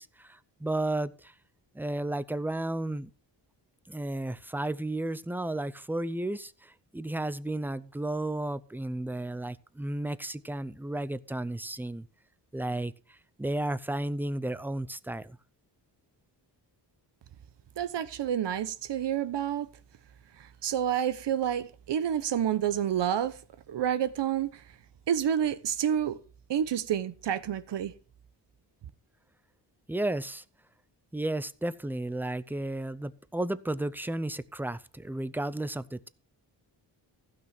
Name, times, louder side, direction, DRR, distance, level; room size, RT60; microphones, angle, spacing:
voice 1, 0.0-1.3 1.7-3.1 3.9-12.1 12.5-15.4 29.9-30.4 31.1-36.1, right 1 dB, 5° right, 0.6 m, -33 dB
voice 2, 17.8-19.7 20.4-23.4 23.7-24.6 25.1-26.2 26.5-27.9, right 9 dB, 75° right, 1.0 m, -29 dB
15.5 x 6.2 x 6.0 m
wide cardioid pair, 115°, 43 cm